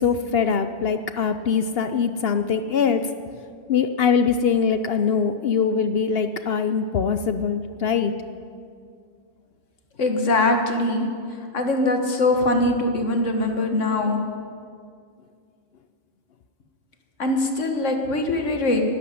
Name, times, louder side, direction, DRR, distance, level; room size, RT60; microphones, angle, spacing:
voice 1, 0.0-3.1 3.7-8.1, left 6 dB, 60° left, 10 dB, 0.8 m, -22 dB
voice 2, 10.0-11.1 11.5-14.2 17.2-18.8, left 2 dB, 85° left, 4 dB, 1.9 m, -22 dB
12.5 x 11.5 x 9.8 m, 2.2 s
omnidirectional pair, 1.2 m